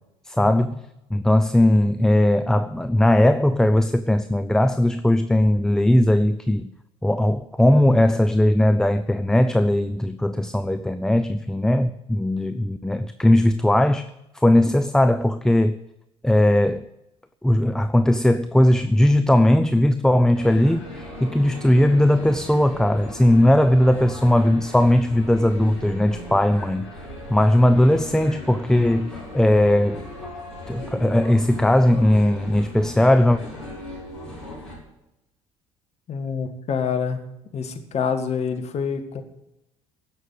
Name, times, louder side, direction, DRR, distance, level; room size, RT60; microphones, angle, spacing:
voice 1, 0.3-0.8 1.1-6.7 7.0-14.1 14.3-15.8 16.2-16.9 17.4-26.9 27.3-30.0 30.7-33.4, left 1 dB, 5° left, 10 dB, 0.6 m, -18 dB
sound 1, 20.3-34.8, left 1 dB, 90° left, 4.8 m, -38 dB
voice 2, 36.1-37.3 37.5-39.2, left 6 dB, 45° left, 5 dB, 1.9 m, -27 dB
16.0 x 6.4 x 9.2 m, 0.90 s
figure-of-eight pair, 55°, 15 cm